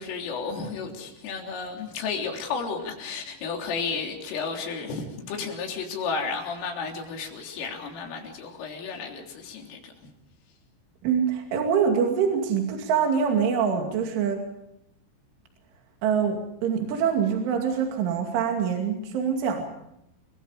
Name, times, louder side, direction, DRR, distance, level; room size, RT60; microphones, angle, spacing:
voice 1, 0.0-10.1, left 5 dB, 85° left, 2 dB, 6.1 m, -33 dB
voice 2, 11.0-14.5 16.0-19.6, right 7 dB, 75° right, 3 dB, 4.9 m, -24 dB
29.5 x 23.5 x 5.1 m, 0.80 s
omnidirectional pair, 5.6 m